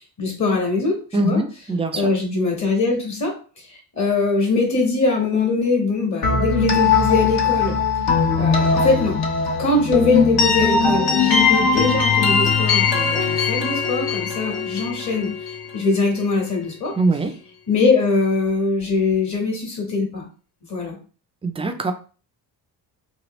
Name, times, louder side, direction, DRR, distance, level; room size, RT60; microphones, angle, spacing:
voice 1, 0.2-1.4 1.9-7.8 8.3-9.2 9.6-15.3 15.7-16.9 17.7-20.2 20.7-21.0, left 3 dB, 40° left, 0 dB, 1.3 m, -22 dB
voice 2, 1.1-2.1 17.0-17.3 21.4-21.9, right 2 dB, 15° right, 7 dB, 0.4 m, -22 dB
sound 1, 6.2-16.0, left 5 dB, 60° left, 1.0 m, -20 dB
3.0 x 2.4 x 3.0 m, 0.38 s
cardioid pair, 85°, 44 cm